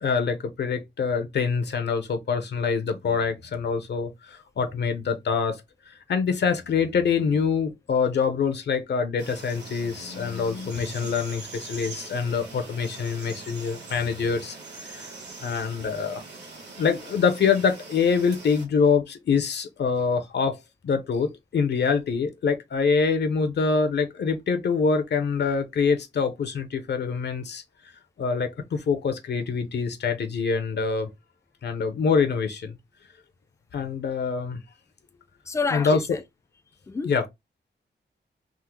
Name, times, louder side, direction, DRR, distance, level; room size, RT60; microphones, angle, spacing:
voice 1, 0.0-5.6 5.9-15.1 15.4-16.2 16.8-20.6 20.8-27.6 28.2-31.1 31.6-32.8 33.7-34.6 35.7-36.0 37.0-37.2, left 5 dB, 70° left, 0.6 m, -25 dB
sound 1, 9.2-18.7, right 3 dB, 65° right, 1.3 m, -42 dB
voice 2, 35.5-36.2 36.9-37.3, left 4 dB, 15° left, 0.3 m, -29 dB
3.6 x 2.0 x 2.9 m
wide cardioid pair, 160°, 19 cm